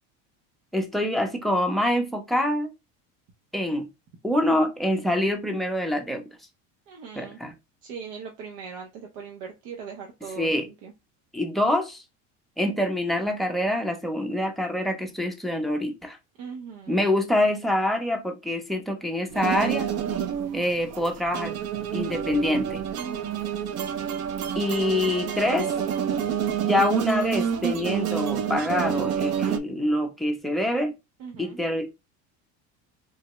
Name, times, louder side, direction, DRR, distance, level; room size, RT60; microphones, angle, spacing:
voice 1, 0.7-2.7 3.5-3.9 4.2-6.2 7.2-7.5 10.4-10.7 11.3-12.0 12.6-16.2 16.9-19.9 20.5-21.6 21.9-22.8 24.5-25.7 26.6-30.9 31.4-31.9, left 1 dB, ahead, 0.6 m, -25 dB
voice 2, 6.9-7.4 7.8-10.9 16.4-17.1 20.2-20.6 23.0-23.5 31.2-31.6, right 6 dB, 80° right, 0.9 m, -40 dB
sound 1, 19.3-29.6, right 8 dB, 45° right, 0.5 m, -28 dB
3.7 x 2.1 x 2.9 m
cardioid pair, 125°, 37 cm